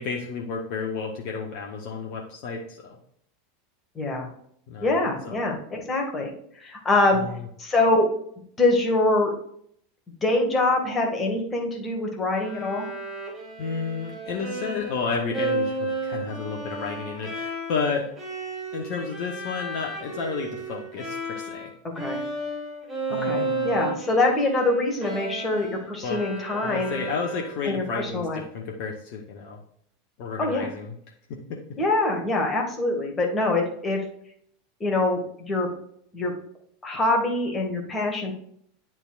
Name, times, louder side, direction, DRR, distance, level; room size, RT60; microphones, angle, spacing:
voice 1, 0.0-3.0 4.7-5.0 5.2-5.4 7.1-7.4 13.6-18.1 18.7-21.7 23.1-23.8 26.0-26.2 26.6-29.6 30.2-30.9 31.3-31.8, left 4 dB, 55° left, 0 dB, 1.0 m, -31 dB
voice 2, 4.0-4.3 4.8-6.3 6.6-7.2 7.6-8.1 8.6-9.3 10.2-12.9 21.8-22.2 23.2-27.0 27.7-28.4 30.4-30.7 31.8-34.0 34.8-35.7 36.1-36.3 36.8-38.3, left 2 dB, 25° left, 1 dB, 2.0 m, -24 dB
Bowed string instrument, 12.3-21.7 22.0-27.8, right 2 dB, 20° right, 2.8 m, -33 dB
9.9 x 4.5 x 2.5 m, 0.66 s
figure-of-eight pair, 80°, 0 cm